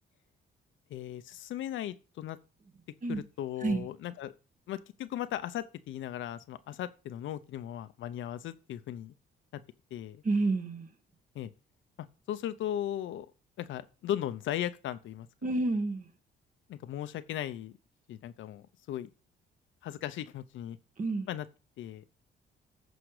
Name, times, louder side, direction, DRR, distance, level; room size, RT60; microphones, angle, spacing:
voice 1, 0.9-2.4 3.1-4.3 4.7-9.1 9.5-9.6 9.9-10.2 11.3-11.5 12.0-13.3 13.6-15.3 16.7-17.8 18.1-19.1 19.8-20.8 21.3-21.5 21.8-22.1, left 11 dB, 80° left, 0.8 m, -37 dB
voice 2, 10.2-10.9 15.4-16.1 21.0-21.3, right 3 dB, 40° right, 1.7 m, -29 dB
14.0 x 5.1 x 5.0 m
cardioid pair, 90°, 20 cm